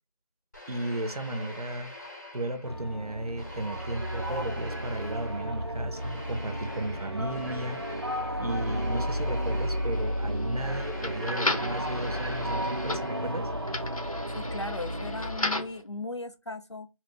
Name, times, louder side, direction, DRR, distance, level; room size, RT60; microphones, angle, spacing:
sound 1, 0.5-3.0 3.4-13.7, left 1 dB, 30° left, 0.9 m, -45 dB
voice 1, 0.7-1.9 2.3-7.8 8.4-13.5, right 1 dB, 90° right, 0.8 m, -34 dB
sound 2, 2.6-15.4, equal, 45° right, 0.5 m, -33 dB
sound 3, 9.9-15.8, left 2 dB, 70° left, 0.9 m, -35 dB
voice 2, 14.3-16.9, left 2 dB, 50° left, 0.5 m, -37 dB
3.0 x 2.6 x 3.1 m
figure-of-eight pair, 180°, 19 cm